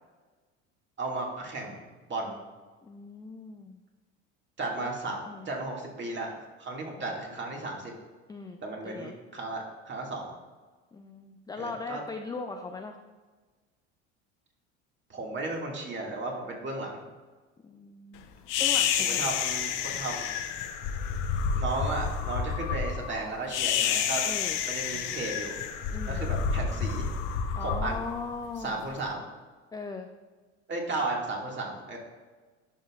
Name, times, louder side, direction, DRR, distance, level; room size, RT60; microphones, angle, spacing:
voice 1, 1.0-2.4 4.6-5.2 5.5-7.9 8.6-10.3 11.6-12.0 15.1-17.0 19.0-20.3 21.5-24.2 24.6-25.6 26.1-27.1 27.6-28.1 28.6-29.2 30.7-32.0, right 2 dB, 30° right, -1 dB, 2.0 m, -34 dB
voice 2, 2.8-3.8 4.8-4.9 5.3-5.5 8.3-9.2 10.9-13.0 17.6-18.2 18.6-19.3 24.2-24.6 25.9-26.3 27.6-28.9 29.7-30.1, left 4 dB, 10° left, 5 dB, 0.3 m, -39 dB
sound 1, 18.5-28.9, left 7 dB, 60° left, 0.8 m, -29 dB
11.0 x 5.5 x 2.4 m, 1.3 s
hypercardioid pair, 85°, 34 cm